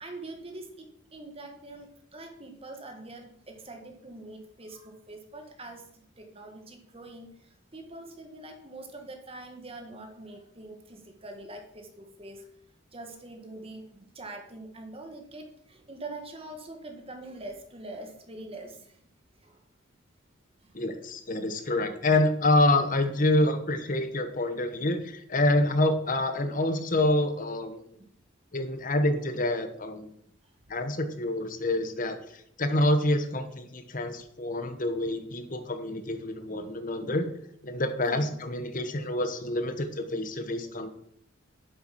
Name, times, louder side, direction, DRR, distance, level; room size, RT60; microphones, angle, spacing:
voice 1, 0.0-12.5 12.9-19.1 19.4-19.6 20.6-20.8 37.0-37.2 38.0-38.4, right 2 dB, 30° right, 4 dB, 1.5 m, -44 dB
voice 2, 20.7-27.8 28.5-30.2 30.7-32.2 32.6-37.3 37.6-40.9, left 1 dB, 40° left, 8 dB, 1.2 m, -27 dB
8.3 x 7.9 x 5.9 m, 0.68 s
head